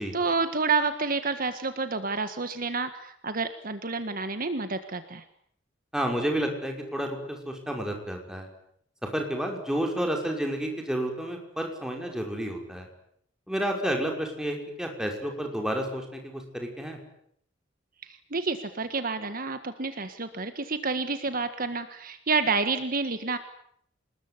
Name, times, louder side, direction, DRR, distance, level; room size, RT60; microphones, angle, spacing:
voice 1, 0.0-5.2 18.0-23.4, right 4 dB, 50° right, 10 dB, 1.6 m, -29 dB
voice 2, 5.9-8.5 9.0-12.9 13.5-17.0, right 1 dB, 5° right, 2 dB, 5.6 m, -30 dB
27.5 x 20.5 x 9.8 m, 0.70 s
head